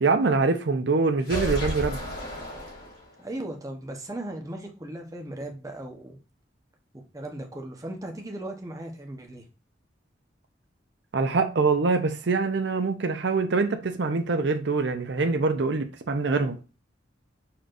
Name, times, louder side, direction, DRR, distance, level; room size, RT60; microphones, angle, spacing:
voice 1, 0.0-2.0 11.1-16.6, right 4 dB, 65° right, 0.6 m, -24 dB
sound 1, 1.2-3.3, right 1 dB, 55° left, 2.1 m, -33 dB
voice 2, 3.2-6.2 7.1-9.4, right 1 dB, 20° right, 0.9 m, -37 dB
4.7 x 4.4 x 2.5 m
head